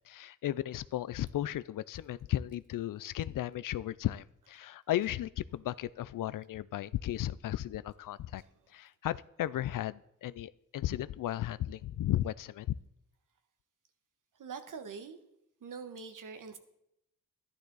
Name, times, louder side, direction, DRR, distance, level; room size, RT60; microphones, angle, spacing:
voice 1, 0.1-8.4 8.7-12.7, left 13 dB, 75° left, 0.5 m, -35 dB
voice 2, 8.4-8.8 14.3-15.2 15.6-16.6, right 5 dB, 70° right, 1.3 m, -45 dB
11.5 x 11.5 x 4.0 m
cardioid pair, 75°, 33 cm